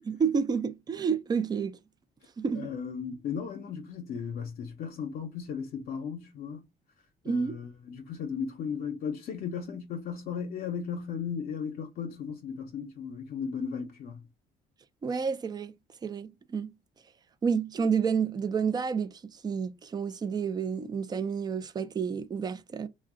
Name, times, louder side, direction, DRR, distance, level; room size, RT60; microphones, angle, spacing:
voice 1, 0.0-1.8 2.4-2.7 7.2-7.6 15.0-15.7 16.0-16.7 17.4-22.9, right 6 dB, 25° right, 0.4 m, -30 dB
voice 2, 2.6-6.6 7.3-14.2, left 6 dB, 60° left, 0.6 m, -36 dB
2.6 x 2.1 x 3.6 m
cardioid pair, 110°, 17 cm